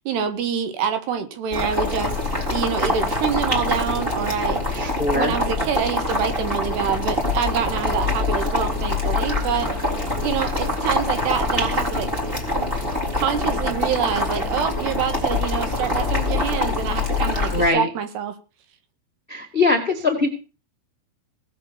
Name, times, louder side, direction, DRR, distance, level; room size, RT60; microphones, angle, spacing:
voice 1, 0.1-2.2 2.5-4.6 5.1-9.7 10.2-12.1 12.5-12.7 13.1-18.4, right 7 dB, 65° right, 3.4 m, -26 dB
Boiling, 1.5-17.7, left 2 dB, 15° right, 2.8 m, -24 dB
voice 2, 4.7-5.3 17.5-17.9 19.3-20.4, left 3 dB, 65° left, 0.5 m, -21 dB
18.5 x 6.7 x 7.0 m
omnidirectional pair, 5.5 m